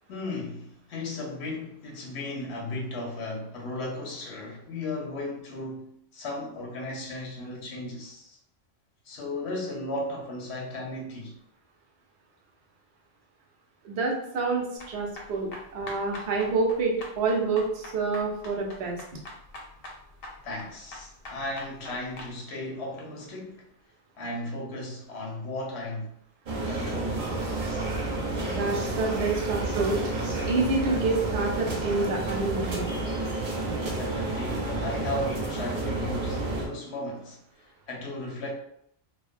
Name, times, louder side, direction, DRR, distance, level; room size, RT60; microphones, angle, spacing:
voice 1, 0.1-5.9 6.1-8.4 9.0-11.3 20.4-23.6 24.2-26.1 26.7-27.2 33.9-38.5, left 2 dB, 85° left, 0.9 m, -35 dB
voice 2, 13.8-19.0 28.5-30.0 30.4-32.9, right 3 dB, 85° right, 0.8 m, -28 dB
sound 1, 14.8-22.3, left 2 dB, 65° left, 0.8 m, -43 dB
sound 2, 26.5-36.7, right 2 dB, 55° right, 0.6 m, -30 dB
2.4 x 2.1 x 2.4 m
omnidirectional pair, 1.1 m